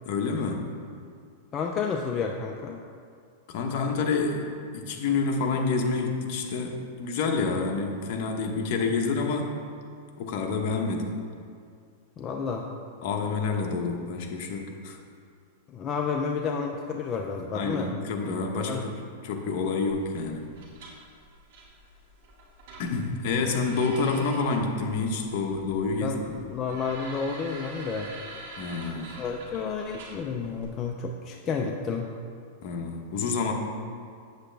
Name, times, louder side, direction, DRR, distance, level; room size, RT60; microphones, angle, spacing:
voice 1, 0.0-0.7 3.5-9.6 10.2-11.1 13.0-15.0 17.5-18.9 19.2-20.5 22.8-26.2 28.6-29.1 32.6-33.5, left 4 dB, 50° left, 2 dB, 1.1 m, -28 dB
voice 2, 1.5-2.8 12.2-12.7 15.7-17.9 18.7-18.9 26.0-28.1 29.1-32.1, left 5 dB, 25° left, 1 dB, 0.5 m, -31 dB
sound 1, 19.9-30.6, right 2 dB, 60° right, 2.3 m, -46 dB
8.4 x 8.0 x 3.4 m, 2.2 s
supercardioid pair, 145°, 0 cm